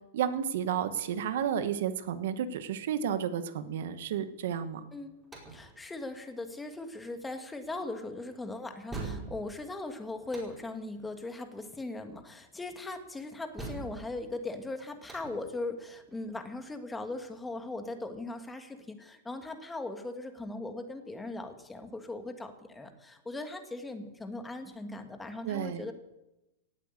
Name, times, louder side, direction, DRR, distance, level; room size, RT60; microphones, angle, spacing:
voice 1, 0.1-4.9 25.4-25.8, right 9 dB, 70° right, 11 dB, 1.2 m, -32 dB
sound 1, 4.8-18.0, right 3 dB, 10° right, 4.7 m, -47 dB
voice 2, 5.5-25.9, left 2 dB, 10° left, 6 dB, 1.7 m, -39 dB
17.5 x 8.4 x 8.3 m, 0.95 s
hypercardioid pair, 135°, 0 cm